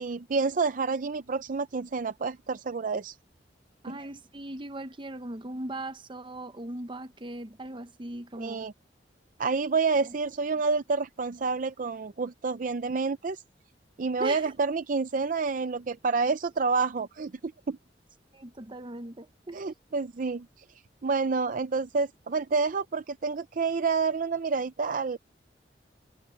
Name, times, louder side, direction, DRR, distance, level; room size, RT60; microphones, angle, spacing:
voice 1, 0.0-3.2 3.9-4.0 8.4-8.7 9.4-13.4 14.0-17.8 19.5-20.5 21.0-25.2, right 4 dB, 45° right, 0.5 m, -28 dB
voice 2, 3.8-8.7 14.2-14.5 18.3-19.6, right 1 dB, 30° right, 0.9 m, -39 dB
head